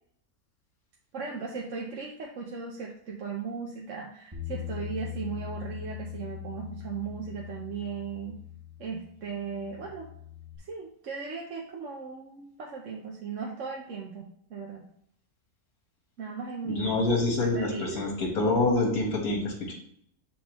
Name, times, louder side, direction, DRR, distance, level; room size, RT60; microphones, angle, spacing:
voice 1, 1.1-8.4 8.8-10.1 10.6-14.8 16.2-17.0 17.5-18.0, right 5 dB, 60° right, -1 dB, 1.2 m, -37 dB
Bass guitar, 4.3-10.6, left 11 dB, 15° right, 1.0 m, -41 dB
voice 2, 16.6-19.7, left 2 dB, 70° left, 0 dB, 2.1 m, -26 dB
9.6 x 3.8 x 3.1 m, 0.67 s
omnidirectional pair, 1.6 m